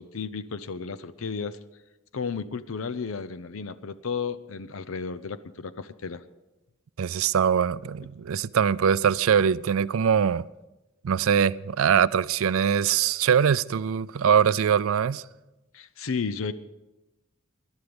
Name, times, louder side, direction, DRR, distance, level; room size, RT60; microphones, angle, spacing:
voice 1, 0.0-1.6 2.1-6.2 15.7-16.5, left 5 dB, 75° left, 0.6 m, -33 dB
voice 2, 7.0-10.4 11.0-15.2, right 7 dB, 80° right, 0.4 m, -22 dB
19.5 x 11.5 x 5.2 m
head